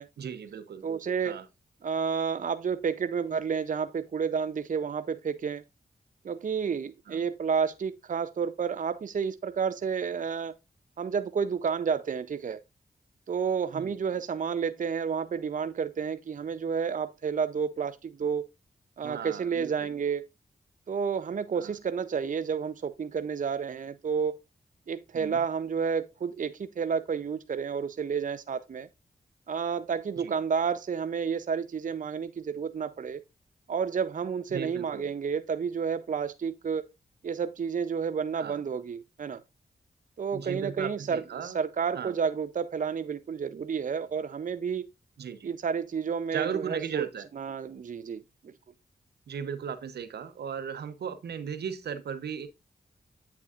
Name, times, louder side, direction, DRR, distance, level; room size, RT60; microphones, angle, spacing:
voice 1, 0.2-0.8 1.2-1.4 7.1-7.2 13.7-14.0 19.0-19.9 21.6-21.7 25.1-25.4 30.2-30.3 34.5-35.1 38.3-38.6 40.3-41.6 41.9-42.1 45.2-45.5 46.3-47.3 49.3-52.5, right 7 dB, 80° right, 0.9 m, -36 dB
voice 2, 0.8-1.4 1.8-5.6 6.2-10.6 11.0-12.6 13.3-18.5 19.0-20.3 20.9-24.4 24.9-28.9 29.5-33.2 33.7-36.8 37.2-39.4 40.2-44.9 45.4-47.1 47.3-48.2, right 6 dB, 50° right, 0.6 m, -30 dB
8.4 x 6.9 x 2.4 m
cardioid pair, 45°, 17 cm